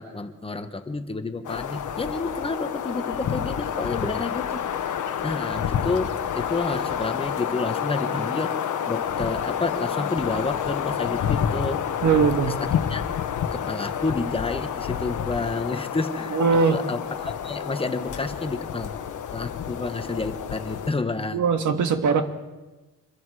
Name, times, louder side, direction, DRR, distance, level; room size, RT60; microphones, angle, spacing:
voice 1, 0.0-4.9 5.2-8.6 8.9-11.8 12.5-13.0 13.5-16.4 16.7-18.9 19.3-21.4, left 3 dB, 15° left, 8 dB, 1.2 m, -30 dB
sound 1, 1.4-20.9, left 8 dB, 65° left, 1.2 m, -29 dB
voice 2, 12.0-12.6 16.3-16.8 21.3-22.2, right 5 dB, 65° right, 7 dB, 1.8 m, -20 dB
27.0 x 22.0 x 4.9 m, 1.2 s
wide cardioid pair, 160°, 33 cm